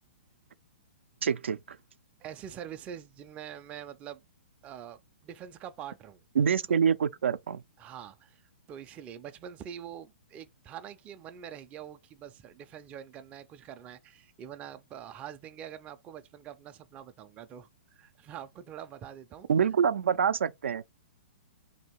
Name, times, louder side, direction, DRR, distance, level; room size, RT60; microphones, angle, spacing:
voice 1, 1.2-1.8 6.4-7.6 19.5-20.8, right 7 dB, 90° right, 0.4 m, -26 dB
voice 2, 2.2-4.2 4.6-6.2 7.8-19.5, right 9 dB, 20° right, 0.4 m, -45 dB
2.8 x 2.7 x 4.4 m
hypercardioid pair, 145°, 6 cm